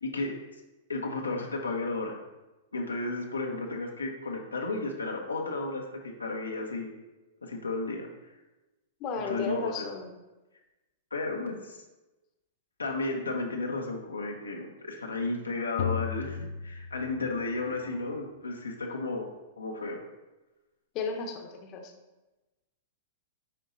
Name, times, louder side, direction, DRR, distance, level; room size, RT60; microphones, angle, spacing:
voice 1, 0.0-0.3 0.9-2.2 2.7-6.9 7.4-8.1 9.1-9.9 11.1-11.8 12.8-19.3 19.6-20.0, left 3 dB, 90° left, 0 dB, 1.1 m, -33 dB
voice 2, 9.0-10.1 20.9-21.9, left 4 dB, 40° left, 3 dB, 1.0 m, -34 dB
sound 1, 15.8-17.7, left 9 dB, 60° left, 0.5 m, -35 dB
9.9 x 3.9 x 3.9 m, 1.1 s
hypercardioid pair, 105°, 0 cm